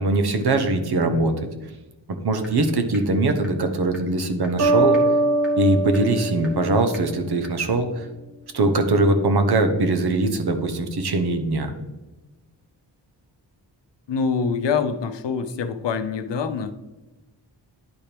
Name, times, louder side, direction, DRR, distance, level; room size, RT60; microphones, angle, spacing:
voice 1, 0.0-1.5 2.1-5.0 5.6-8.1 8.5-11.7, right 2 dB, 60° right, 7 dB, 0.9 m, -21 dB
sound 1, 2.4-2.5 2.9-3.0 3.4-3.5 3.9-4.0 4.4-4.5 4.9-5.0 5.4-5.5 5.9-6.0 6.4-6.5 6.9-7.0 7.4-7.5, left 1 dB, ahead, 1.4 m, -41 dB
sound 2, 4.6-7.4, right 2 dB, 45° right, 0.9 m, -22 dB
voice 2, 14.1-16.7, left 5 dB, 75° left, 10 dB, 0.6 m, -25 dB
10.5 x 4.4 x 3.4 m, 1.1 s
wide cardioid pair, 125°, 43 cm